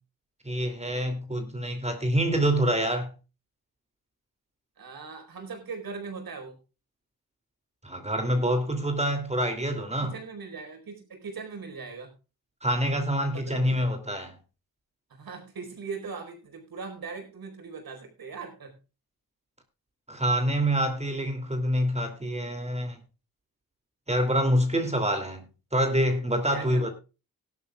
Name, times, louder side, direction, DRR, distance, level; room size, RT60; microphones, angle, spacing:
voice 1, 0.4-3.1 7.8-10.1 12.6-14.4 20.1-23.0 24.1-25.5 25.7-26.9, equal, 20° right, 2.8 m, -26 dB
voice 2, 4.8-6.6 10.0-12.1 13.2-13.6 15.1-18.8 26.4-26.9, right 5 dB, 80° right, 4.6 m, -40 dB
18.0 x 11.5 x 2.3 m
cardioid pair, 75°, 35 cm